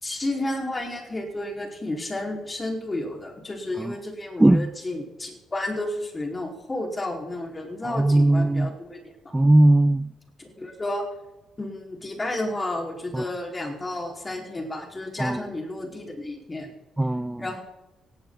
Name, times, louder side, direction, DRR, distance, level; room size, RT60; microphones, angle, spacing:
voice 1, 0.0-9.3 10.4-11.0 11.6-16.7 17.4-17.6, left 1 dB, 25° left, 5.0 m, -32 dB
voice 2, 4.4-4.7 7.8-8.7 9.3-10.1 13.1-13.3 15.2-15.4 17.0-17.5, right 1 dB, 10° right, 0.4 m, -19 dB
18.5 x 15.5 x 4.2 m
cardioid pair, 90°, 0 cm